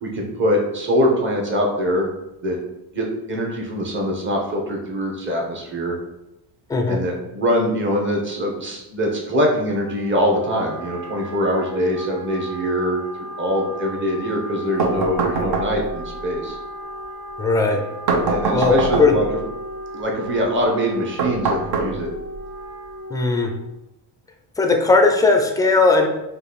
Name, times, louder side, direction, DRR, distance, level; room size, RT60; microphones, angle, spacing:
voice 1, 0.0-2.1 2.4-2.6 2.9-5.9 6.9-13.0 13.4-16.6 18.2-19.2 19.9-22.1, equal, 30° right, 0 dB, 1.0 m, -23 dB
Wind instrument woodwind instrument, 9.7-23.7, equal, 80° right, 1.5 m, -35 dB
sound 1, 14.8-16.1 18.1-19.4 21.2-22.4, right 3 dB, 65° right, 1.0 m, -23 dB
voice 2, 17.4-17.8 18.5-19.1 23.1-23.5 24.6-26.1, left 3 dB, 10° left, 3 dB, 0.4 m, -17 dB
5.2 x 2.5 x 4.0 m, 0.92 s
cardioid pair, 150°, 42 cm